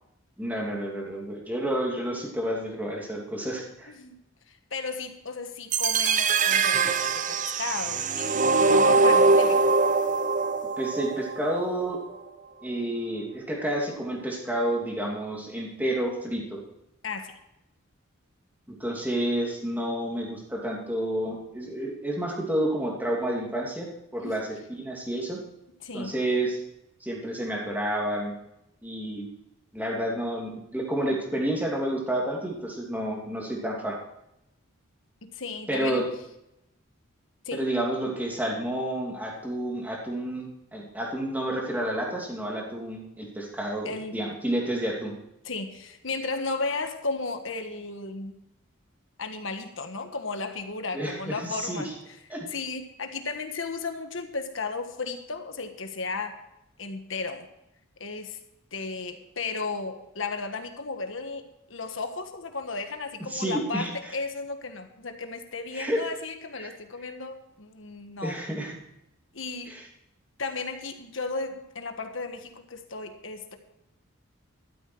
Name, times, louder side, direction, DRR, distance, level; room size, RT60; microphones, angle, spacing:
voice 1, 0.4-3.9 10.8-12.0 12.6-16.6 18.7-25.4 25.9-26.6 27.0-28.3 28.8-29.3 29.7-34.0 35.7-36.1 37.5-45.1 50.9-51.9 52.3-52.5 63.3-64.1 65.7-66.0 66.6-66.7 68.2-68.8 69.7-69.8, right 1 dB, 10° right, -2 dB, 2.8 m, -30 dB
voice 2, 4.7-9.7 17.0-17.4 24.2-24.3 25.8-26.1 35.2-36.1 37.4-37.6 43.8-44.2 45.4-48.3 49.2-51.9 52.5-56.3 56.8-57.5 58.0-58.4 58.7-68.4 69.3-69.8 70.4-73.6, left 3 dB, 65° left, 6 dB, 1.5 m, -34 dB
sound 1, 5.7-11.7, right 4 dB, 40° right, 0.7 m, -22 dB
13.0 x 12.5 x 4.7 m, 0.85 s
head